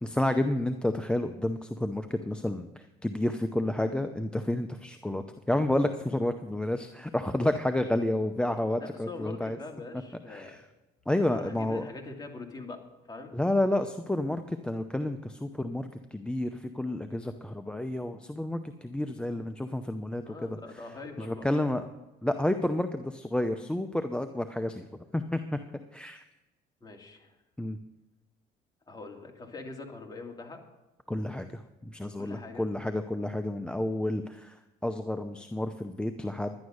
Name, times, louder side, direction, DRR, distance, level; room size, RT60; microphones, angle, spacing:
voice 1, 0.0-9.6 10.3-10.6 11.1-11.8 13.3-20.6 21.2-21.8 22.2-24.9 25.1-25.6 25.9-26.2 27.6-27.8 31.1-34.5 34.8-36.5, left 1 dB, 5° left, 8 dB, 0.6 m, -30 dB
voice 2, 8.8-10.6 11.3-12.8 13.1-13.3 20.3-21.5 26.8-27.3 28.9-30.6 32.2-32.7, left 3 dB, 25° left, 2 dB, 2.6 m, -43 dB
11.5 x 10.5 x 6.4 m, 1.0 s
cardioid pair, 110°, 17 cm